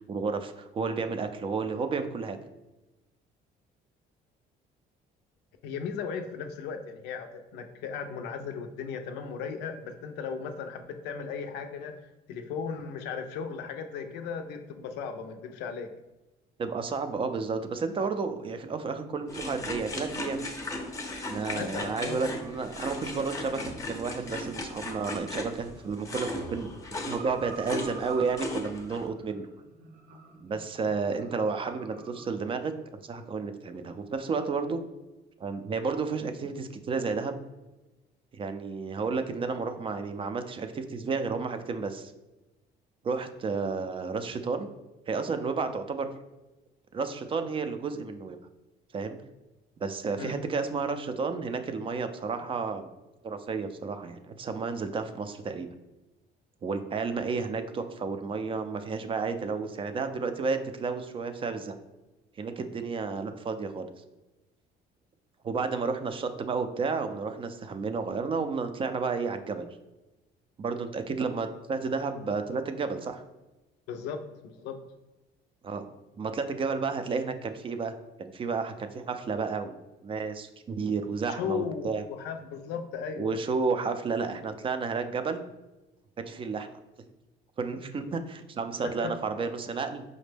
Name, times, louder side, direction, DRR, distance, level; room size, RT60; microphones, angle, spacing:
voice 1, 0.1-2.4 16.6-20.4 21.3-29.5 30.4-32.7 33.0-34.8 35.4-37.3 38.3-42.1 43.0-44.7 45.1-46.1 46.9-48.4 48.9-49.2 49.8-52.9 53.2-55.7 56.6-61.7 62.4-63.9 65.4-69.7 70.6-73.2 75.6-75.8 76.2-77.9 78.2-82.0 83.2-85.4 86.2-86.8 87.6-90.0, right 4 dB, 30° right, 8 dB, 0.4 m, -32 dB
voice 2, 5.6-11.9 12.3-15.9 21.5-22.2 50.2-50.4 73.9-74.8 81.4-83.3 88.8-89.1, left 6 dB, 90° left, 6 dB, 0.5 m, -36 dB
sound 1, 19.3-29.0, left 1 dB, 20° left, 0.5 m, -37 dB
sound 2, 21.8-32.3, right 5 dB, 65° right, 0.7 m, -48 dB
5.0 x 2.1 x 3.3 m, 1.0 s
cardioid pair, 110°, 17 cm